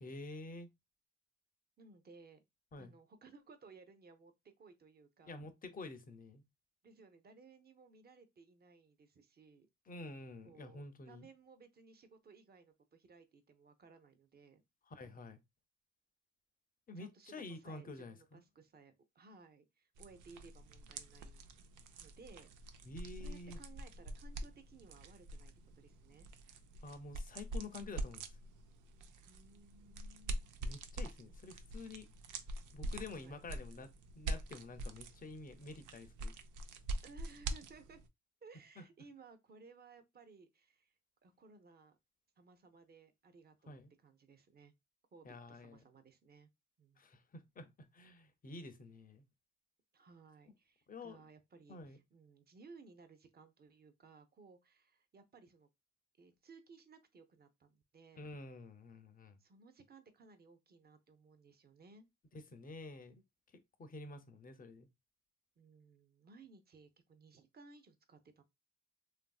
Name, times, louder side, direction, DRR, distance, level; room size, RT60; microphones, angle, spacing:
voice 1, 0.0-0.7 2.7-2.9 5.2-6.4 9.9-11.3 14.9-15.4 16.9-18.4 22.8-23.6 26.8-28.4 30.6-32.1 32.7-36.3 38.8-38.9 43.7-43.9 45.2-45.8 47.0-49.3 50.9-51.2 51.7-52.0 58.1-59.4 62.3-63.2 63.5-64.9, left 2 dB, 30° left, 0.5 m, -49 dB
voice 2, 1.8-2.4 2.8-4.3 4.6-5.4 6.8-9.7 10.4-14.6 16.9-21.5 22.0-22.5 23.2-26.3 29.2-30.6 33.1-33.4 37.0-38.0 38.4-40.9 41.2-42.0 42.4-44.7 45.1-46.5 46.8-47.0 49.9-55.7 56.2-58.2 59.4-62.1 65.6-68.4, right 4 dB, 30° right, 0.6 m, -60 dB
sound 1, 20.0-38.1, right 2 dB, 80° right, 0.5 m, -45 dB
3.0 x 2.5 x 2.3 m
cardioid pair, 90°, 30 cm